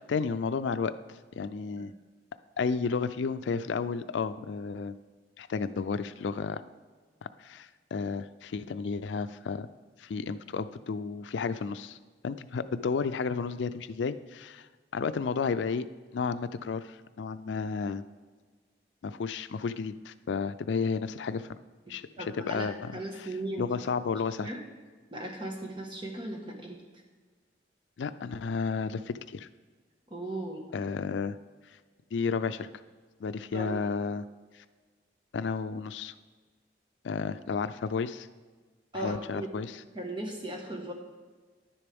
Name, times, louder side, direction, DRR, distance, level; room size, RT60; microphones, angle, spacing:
voice 1, 0.1-0.9 1.3-1.9 2.6-5.0 5.4-6.6 7.4-9.7 10.0-12.0 12.2-14.7 14.9-15.9 16.1-18.0 19.0-21.6 21.9-23.3 23.6-24.5 28.0-29.5 30.7-31.4 32.1-32.7 33.2-34.3 34.5-34.6 35.3-36.1 37.0-38.3 38.9-39.8, left 5 dB, 85° left, 12 dB, 0.4 m, -32 dB
voice 2, 22.2-23.7 24.4-24.6 25.1-26.8 30.1-30.6 33.5-33.8 38.9-39.5 39.9-40.9, right 1 dB, 25° right, 1 dB, 1.4 m, -37 dB
10.5 x 10.0 x 3.5 m, 1.4 s
head